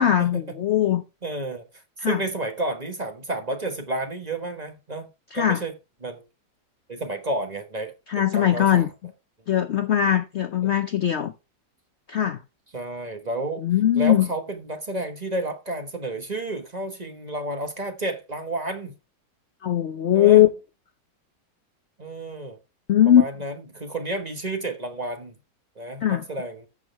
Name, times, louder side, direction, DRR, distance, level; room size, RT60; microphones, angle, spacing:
voice 1, 0.0-1.0 2.0-2.2 5.3-5.6 8.1-8.9 9.5-11.3 12.1-12.4 13.6-14.3 19.6-20.5 22.9-23.2 26.0-26.2, left 11 dB, 80° left, 0.6 m, -20 dB
voice 2, 1.2-5.7 6.0-6.2 6.9-8.9 10.6-10.7 12.7-13.6 13.9-19.0 20.1-20.4 22.0-22.6 23.1-25.3 25.8-26.7, right 2 dB, 25° right, 1.1 m, -31 dB
14.0 x 6.3 x 3.2 m
omnidirectional pair, 1.9 m